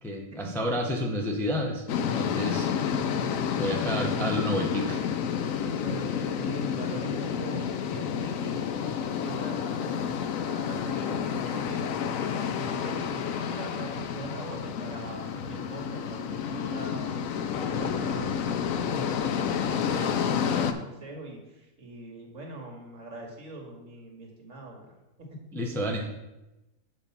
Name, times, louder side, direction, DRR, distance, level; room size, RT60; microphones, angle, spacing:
voice 1, 0.0-2.7 3.6-5.0 25.5-26.1, equal, ahead, 1 dB, 0.6 m, -30 dB
sound 1, 1.9-20.7, left 7 dB, 75° left, 1.0 m, -30 dB
voice 2, 5.8-12.3 12.6-24.9 25.2-25.3, right 2 dB, 60° right, 0 dB, 1.9 m, -43 dB
6.9 x 5.1 x 5.3 m, 0.98 s
omnidirectional pair, 1.5 m